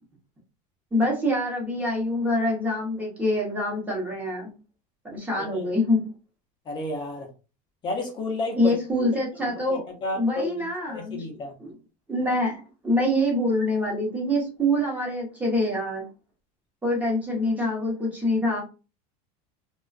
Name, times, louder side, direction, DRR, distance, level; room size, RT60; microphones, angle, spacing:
voice 1, 0.9-4.5 5.0-6.1 8.6-9.8 10.1-11.2 11.6-11.7 12.1-16.0 16.8-18.6, left 1 dB, 10° right, -2 dB, 0.8 m, -25 dB
voice 2, 5.4-5.7 6.7-7.3 7.8-8.7 9.0-9.1 9.4-11.5, left 2 dB, 25° left, 2 dB, 0.5 m, -32 dB
2.4 x 2.2 x 2.4 m, 0.32 s
supercardioid pair, 160°, 19 cm